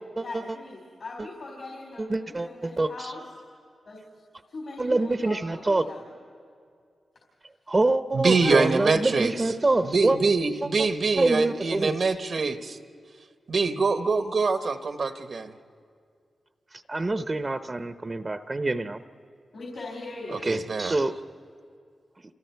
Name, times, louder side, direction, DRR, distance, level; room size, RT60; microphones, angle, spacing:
voice 1, 0.2-3.2 3.9-4.0 4.5-6.1 8.4-8.7 19.5-20.6, left 3 dB, 70° left, -1 dB, 4.4 m, -40 dB
voice 2, 2.0-3.1 4.8-5.9 7.7-10.2 11.2-12.0 16.7-19.0 20.4-21.2, right 2 dB, 35° right, 10 dB, 0.8 m, -26 dB
voice 3, 8.1-9.3 9.8-12.8 13.5-15.5 20.3-20.9, right 4 dB, 65° right, 9 dB, 1.2 m, -24 dB
28.0 x 27.0 x 4.7 m, 2.3 s
cardioid pair, 45°, 0 cm